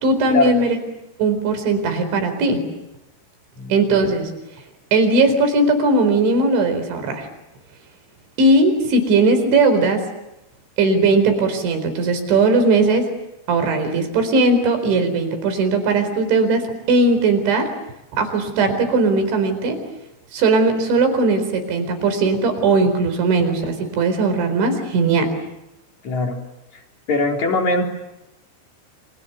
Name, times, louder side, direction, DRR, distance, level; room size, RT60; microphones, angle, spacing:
voice 1, 0.0-0.8 1.2-2.6 3.7-4.3 4.9-7.3 8.4-10.0 10.8-13.1 13.5-17.7 18.1-19.8 20.3-25.3, right 3 dB, 65° right, 8 dB, 6.6 m, -18 dB
voice 2, 26.0-26.4 27.1-27.8, left 3 dB, 40° left, 2 dB, 4.4 m, -20 dB
30.0 x 27.0 x 7.0 m, 0.90 s
omnidirectional pair, 5.7 m